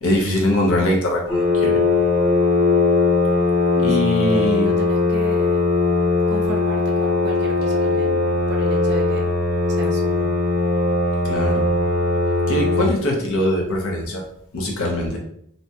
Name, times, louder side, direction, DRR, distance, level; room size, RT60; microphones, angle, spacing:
voice 1, 0.0-1.8 3.8-4.7 11.2-11.7 12.5-14.2 14.5-15.2, left 1 dB, 65° left, 0 dB, 0.7 m, -22 dB
sound 1, 1.3-12.8, left 3 dB, 5° right, 0.9 m, -19 dB
voice 2, 3.7-5.6 6.3-9.2 9.8-10.3, right 1 dB, 50° right, 1 dB, 0.6 m, -34 dB
2.7 x 2.2 x 2.8 m, 0.69 s
head